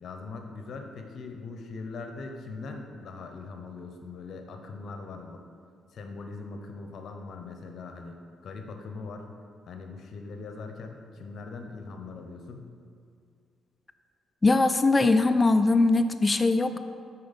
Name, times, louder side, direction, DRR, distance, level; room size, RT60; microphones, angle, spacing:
voice 1, 0.0-5.4 5.9-8.2 8.4-9.3 9.7-12.7, left 4 dB, 65° left, 4 dB, 0.7 m, -41 dB
voice 2, 14.4-16.8, left 3 dB, 20° left, 8 dB, 0.3 m, -21 dB
6.5 x 4.4 x 4.1 m, 2.3 s
cardioid pair, 90°, 0 cm